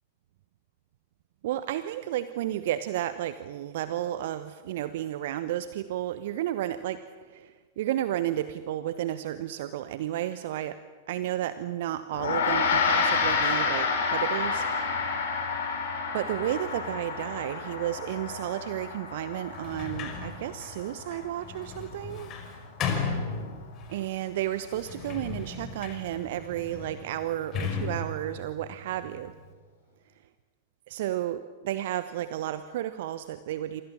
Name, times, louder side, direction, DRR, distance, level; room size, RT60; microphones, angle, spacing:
voice 1, 1.4-10.8 11.1-14.7 16.1-22.3 23.9-29.3 30.9-33.8, right 12 dB, 55° right, 12 dB, 1.0 m, -32 dB
Gong, 12.1-21.8, left 5 dB, 60° left, 6.8 m, -29 dB
Sliding door, 19.5-24.0 24.6-29.5, left 5 dB, 35° left, 5.1 m, -36 dB
28.0 x 25.5 x 7.3 m, 1.5 s
figure-of-eight pair, 95°, 0 cm